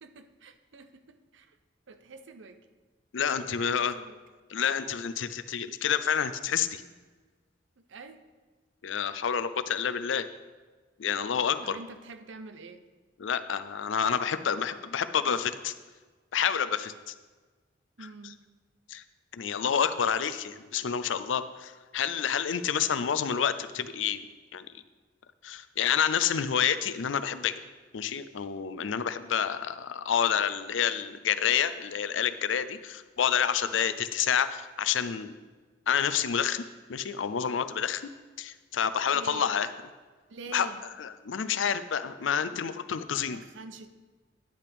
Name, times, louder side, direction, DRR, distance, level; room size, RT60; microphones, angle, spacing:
voice 1, 0.0-1.6 1.9-2.7 3.3-4.2 7.9-8.2 11.6-12.9 18.0-18.4 39.1-39.5 40.3-40.8 43.1-43.9, right 3 dB, 80° right, 10 dB, 0.6 m, -46 dB
voice 2, 3.1-4.0 4.5-6.8 8.8-10.3 11.0-11.8 13.2-15.7 16.3-17.1 18.9-19.0 19.3-24.2 24.5-24.7 25.4-27.5 27.9-35.4 35.9-36.6 36.9-38.0 38.4-39.7 40.5-40.7 41.0-43.4, left 8 dB, 85° left, 13 dB, 0.5 m, -28 dB
10.0 x 8.4 x 3.5 m, 1.4 s
head